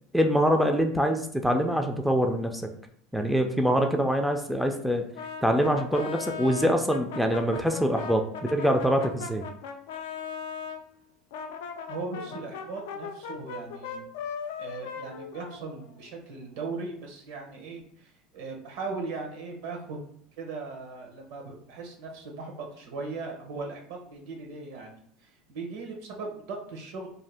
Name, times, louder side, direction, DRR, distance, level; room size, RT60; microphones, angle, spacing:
voice 1, 0.1-2.7 3.1-5.1 5.4-9.4, equal, ahead, 3 dB, 0.3 m, -24 dB
Brass instrument, 5.1-10.8 11.3-16.1, left 6 dB, 85° left, 0.3 m, -38 dB
voice 2, 11.9-14.1 14.6-20.0 20.4-27.1, right 3 dB, 75° right, 1 dB, 0.8 m, -38 dB
2.6 x 2.2 x 3.3 m, 0.64 s
supercardioid pair, 120°, 0 cm